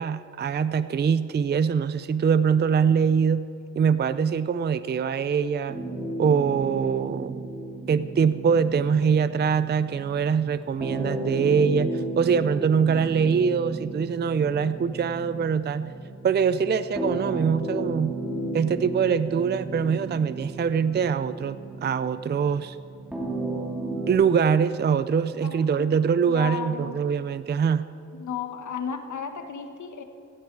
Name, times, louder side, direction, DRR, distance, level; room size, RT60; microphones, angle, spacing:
voice 1, 0.0-3.5 3.8-5.8 6.2-7.4 7.9-15.9 16.2-18.1 18.5-22.8 24.1-27.8, right 6 dB, 35° right, 13 dB, 0.4 m, -23 dB
sound 1, 5.7-24.1, right 2 dB, 5° right, 2.6 m, -34 dB
voice 2, 26.3-27.0 28.1-30.0, left 7 dB, 90° left, 6 dB, 1.4 m, -34 dB
16.5 x 15.5 x 4.7 m, 2.9 s
wide cardioid pair, 155°, 29 cm